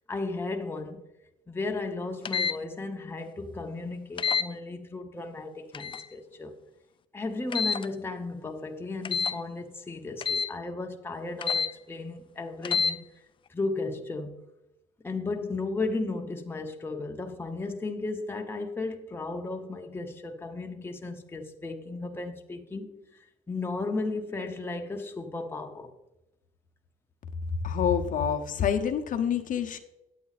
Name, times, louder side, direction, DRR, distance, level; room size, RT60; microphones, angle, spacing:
voice 1, 0.1-1.0 1.5-6.5 7.1-13.1 13.5-14.4 15.0-25.9, left 3 dB, 15° left, 0.9 m, -35 dB
sound 1, 2.2-2.6 4.2-4.5 5.7-6.0 7.5-7.9 9.0-9.4 10.2-10.5 11.4-11.7 12.6-12.9, left 6 dB, 30° left, 0.4 m, -27 dB
voice 2, 27.6-29.8, left 8 dB, 50° left, 0.9 m, -27 dB
9.2 x 8.6 x 4.1 m
cardioid pair, 110°, 17 cm